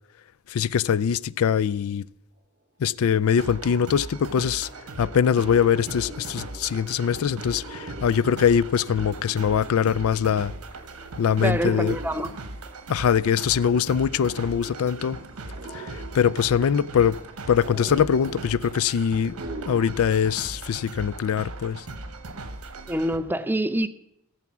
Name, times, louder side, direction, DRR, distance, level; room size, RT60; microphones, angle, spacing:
voice 1, 0.5-2.0 2.8-4.7 5.0-10.5 11.2-12.0 12.9-15.2 15.7-17.2 17.5-19.3 19.7-21.8, left 7 dB, 70° left, 0.4 m, -22 dB
sound 1, 3.2-3.3 3.6-19.8, right 1 dB, 35° right, 1.5 m, -44 dB
sound 2, 3.4-23.2, right 2 dB, 90° right, 1.2 m, -39 dB
voice 2, 11.4-12.3 22.9-23.9, right 1 dB, 10° right, 0.5 m, -25 dB
14.5 x 7.1 x 6.0 m
head